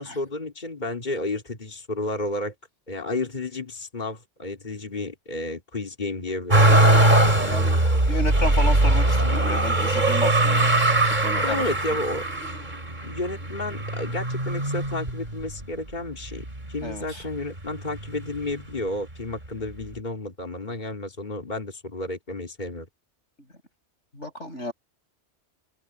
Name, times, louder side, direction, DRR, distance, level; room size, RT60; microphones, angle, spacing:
voice 1, 0.0-2.5 2.9-6.6 11.4-12.2 13.0-22.9, left 2 dB, 40° left, 3.3 m, -31 dB
Motor vehicle (road), 6.5-15.6 16.2-17.0 17.3-18.4 19.4-19.5, right 2 dB, 40° right, 3.6 m, -21 dB
voice 2, 7.4-10.7 11.2-11.6 16.8-17.2 24.1-24.7, left 2 dB, 85° left, 6.8 m, -32 dB
open air
omnidirectional pair, 1.2 m